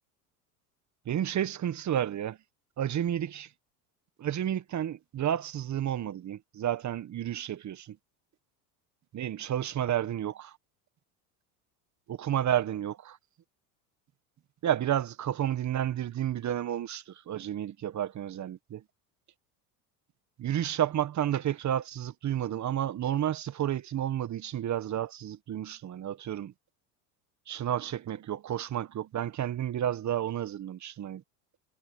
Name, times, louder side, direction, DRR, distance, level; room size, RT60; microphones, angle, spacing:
voice 1, 1.0-2.4 2.8-3.5 4.2-8.0 9.1-10.6 12.1-13.2 14.6-18.8 20.4-26.5 27.5-31.2, right 11 dB, 35° right, 1.5 m, -31 dB
hypercardioid pair, 90°, 47 cm